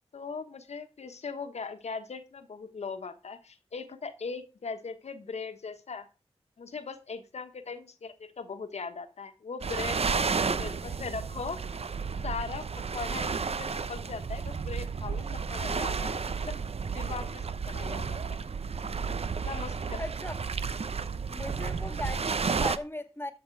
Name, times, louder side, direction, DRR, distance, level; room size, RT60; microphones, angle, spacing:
voice 1, 0.1-6.1 6.6-11.6 12.2-18.4 19.4-20.0, left 5 dB, 85° left, 1.4 m, -39 dB
sound 1, 9.6-22.8, right 5 dB, 70° right, 0.8 m, -32 dB
voice 2, 10.3-11.0 20.0-20.3 21.3-23.3, left 1 dB, 20° left, 1.8 m, -38 dB
13.0 x 6.0 x 4.7 m
cardioid pair, 50°, 11 cm